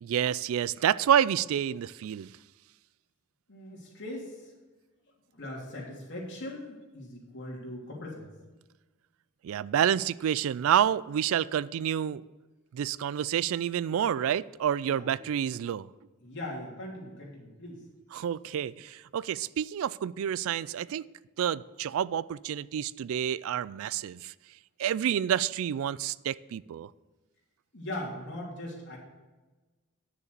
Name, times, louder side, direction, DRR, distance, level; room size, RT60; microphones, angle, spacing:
voice 1, 0.0-2.3 9.4-12.2 12.7-15.9 18.1-21.0 21.4-24.3 24.8-26.9, right 9 dB, 70° right, 0.3 m, -28 dB
voice 2, 3.5-4.5 5.3-8.3 14.9-15.3 16.2-17.8 27.7-29.0, left 1 dB, 55° left, 3.2 m, -40 dB
9.9 x 6.9 x 6.7 m
head